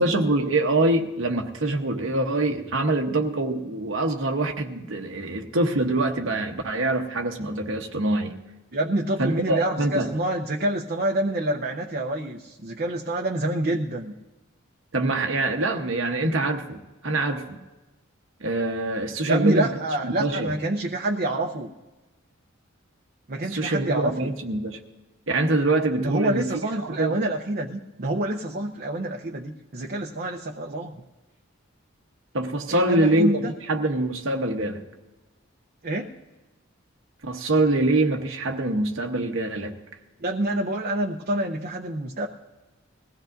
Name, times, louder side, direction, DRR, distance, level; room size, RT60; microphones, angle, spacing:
voice 1, 0.0-8.3 9.2-10.1 14.9-17.6 18.4-20.6 23.5-24.8 25.3-26.5 26.8-27.2 32.3-34.8 37.2-39.8, right 2 dB, 70° right, 2 dB, 1.1 m, -24 dB
voice 2, 8.7-14.1 19.3-21.7 23.3-24.3 26.0-30.9 32.7-33.5 35.8-36.1 40.2-42.3, right 1 dB, 50° right, -1 dB, 0.8 m, -27 dB
21.0 x 16.0 x 2.6 m, 1.1 s
head